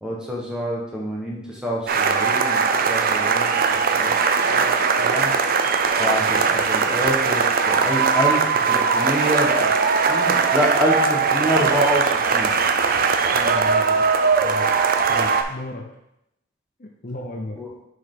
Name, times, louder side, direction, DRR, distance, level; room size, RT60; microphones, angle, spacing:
voice 1, 0.0-3.6 3.9-4.1 4.4-4.7 5.0-5.3 6.0-9.8 10.1-12.6 17.6-17.7, equal, 5° right, -3 dB, 1.2 m, -26 dB
sound 1, 1.9-15.4, right 5 dB, 45° right, 0.5 m, -20 dB
voice 2, 13.3-14.1 14.4-14.8 15.1-15.8 16.8-17.6, left 1 dB, 40° left, 1 dB, 0.7 m, -34 dB
6.4 x 5.4 x 3.7 m, 0.84 s
head